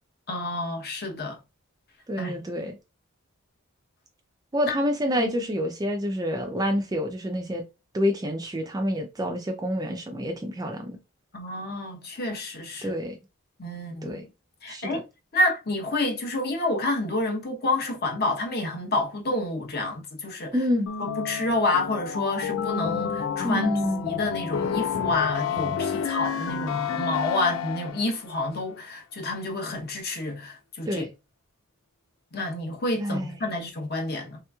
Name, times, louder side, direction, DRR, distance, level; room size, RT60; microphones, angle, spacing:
voice 1, 0.3-1.4 2.2-2.4 4.7-4.8 5.2-5.3 11.3-13.0 13.6-14.2 14.6-15.0 15.3-20.5 21.3-23.7 24.0-31.0 32.3-34.4, left 2 dB, 45° left, 0.8 m, -29 dB
voice 2, 2.1-2.8 4.5-7.6 7.9-11.0 12.8-13.2 14.0-14.2 14.7-15.0 20.5-20.9 23.4-24.0 30.9-31.1 33.0-33.5, equal, 15° right, 0.3 m, -28 dB
sound 1, 20.9-28.1, left 7 dB, 60° left, 0.3 m, -29 dB
3.3 x 2.9 x 2.3 m
head